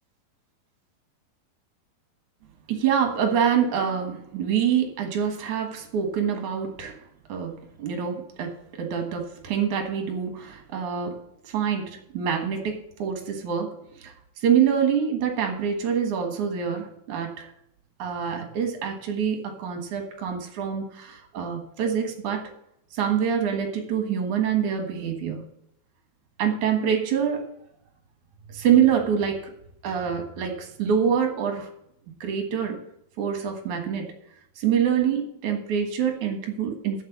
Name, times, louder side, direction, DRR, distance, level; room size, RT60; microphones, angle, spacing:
voice 1, 2.7-7.0 7.3-11.2 11.4-14.1 14.4-17.5 18.0-22.5 22.9-25.4 26.4-27.4 28.5-29.5 29.8-31.7 32.2-32.8 33.2-34.1 34.6-37.0, right 8 dB, 60° right, 4 dB, 2.7 m, -25 dB
7.9 x 7.4 x 8.1 m, 0.74 s
omnidirectional pair, 4.4 m